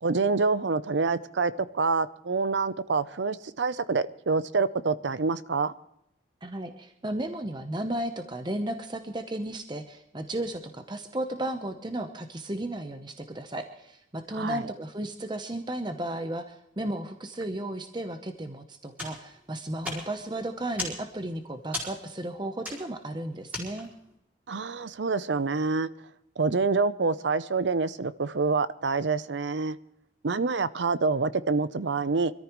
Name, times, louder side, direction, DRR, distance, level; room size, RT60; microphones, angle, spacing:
voice 1, 0.0-5.7 14.4-14.7 24.5-25.9 26.4-29.8 30.2-32.3, right 4 dB, 70° right, 15 dB, 0.6 m, -27 dB
voice 2, 6.4-23.9, right 1 dB, 25° right, 7 dB, 0.8 m, -34 dB
sound 1, 18.9-24.1, left 1 dB, 10° right, 4.6 m, -39 dB
25.0 x 13.5 x 3.1 m, 0.78 s
head